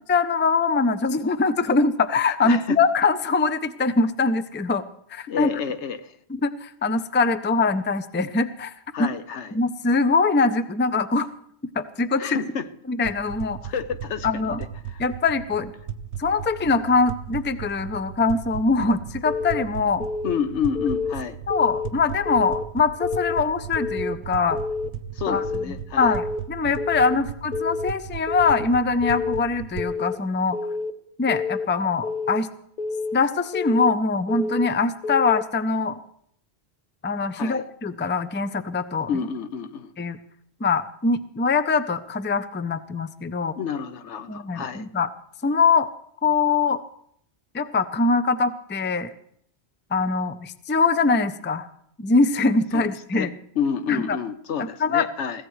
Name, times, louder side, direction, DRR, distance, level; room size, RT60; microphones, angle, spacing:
voice 1, 0.1-4.8 5.1-5.5 6.3-8.7 9.0-9.1 9.5-11.3 11.8-12.4 12.9-13.7 14.2-14.6 15.0-15.7 16.2-20.0 21.5-24.6 25.3-30.6 31.2-32.5 33.1-36.0 37.0-39.1 40.0-40.2 40.6-43.6 44.3-45.1 45.4-45.9 46.2-46.8 47.5-49.1 49.9-51.7 52.0-53.3 53.9-54.2 54.8-55.1, left 4 dB, 15° left, 12 dB, 0.4 m, -23 dB
voice 2, 2.4-2.8 5.3-6.2 8.9-9.6 12.2-12.7 13.7-14.4 14.9-15.0 20.2-21.4 25.1-26.1 27.1-27.2 37.3-37.6 39.1-39.9 43.6-44.9 52.7-53.3 53.6-55.4, left 7 dB, 85° left, 10 dB, 1.1 m, -29 dB
sound 1, 13.0-29.9, right 8 dB, 75° right, 1.0 m, -37 dB
Keyboard (musical) / Alarm, 19.2-19.6 20.0-20.4 20.7-21.1 21.5-21.9 22.2-22.6 23.0-23.4 23.8-24.1 24.5-24.9 25.3-25.6 26.0-26.4 26.8-27.1 27.5-27.9 28.3-28.6 29.0-29.4 29.8-30.1 30.5-30.9 31.3-31.7 32.0-32.4 32.8-33.2 33.5-33.9 34.3-34.7 35.0-35.4, left 4 dB, 45° left, 0.9 m, -28 dB
22.0 x 16.0 x 3.2 m, 0.69 s
omnidirectional pair, 1.1 m